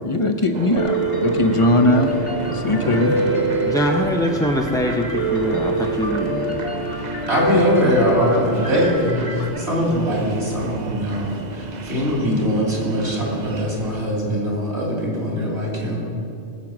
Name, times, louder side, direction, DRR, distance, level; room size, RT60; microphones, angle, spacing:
voice 1, 0.0-2.1 2.5-3.1, left 1 dB, 30° left, 5 dB, 0.8 m, -19 dB
sound 1, 0.5-14.0, right 4 dB, 45° right, 0.7 m, -32 dB
Piano, 0.8-9.5, right 2 dB, 50° left, 1.4 m, -25 dB
voice 2, 3.6-6.6, equal, 5° left, 0 dB, 0.3 m, -23 dB
voice 3, 7.3-16.0, equal, 60° right, -3 dB, 3.5 m, -22 dB
18.0 x 7.7 x 6.0 m, 2.6 s
omnidirectional pair, 1.3 m